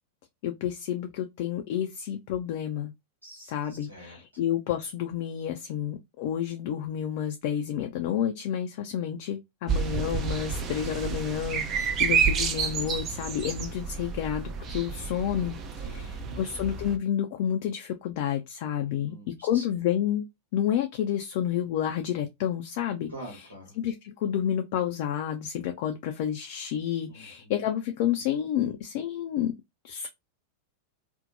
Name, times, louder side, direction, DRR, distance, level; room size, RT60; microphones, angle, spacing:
voice 1, 0.4-2.9 3.5-19.1 19.4-20.3 20.5-23.1 23.8-29.5 29.8-30.1, left 10 dB, 50° left, 0.3 m, -30 dB
voice 2, 3.2-4.2 15.8-16.5 18.8-19.8 23.1-23.8 27.1-27.6, right 1 dB, 80° right, 1.1 m, -46 dB
sound 1, 9.7-17.0, right 6 dB, 30° right, 0.5 m, -30 dB
2.6 x 2.1 x 2.6 m
figure-of-eight pair, 90°, 0 cm